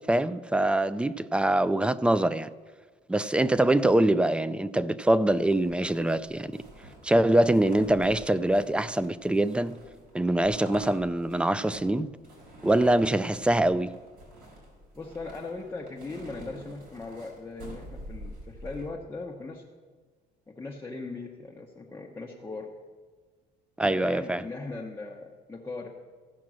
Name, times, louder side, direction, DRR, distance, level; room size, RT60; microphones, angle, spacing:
voice 1, 0.1-2.5 3.1-6.5 7.0-9.8 10.1-12.1 12.6-13.9 23.8-24.4, right 1 dB, 5° right, 0.3 m, -24 dB
sound 1, 5.3-18.9, right 1 dB, 60° right, 4.0 m, -47 dB
voice 2, 14.9-19.6 20.5-22.7 23.8-25.9, left 3 dB, 15° left, 1.0 m, -39 dB
15.0 x 6.1 x 6.2 m
cardioid pair, 110°, 17 cm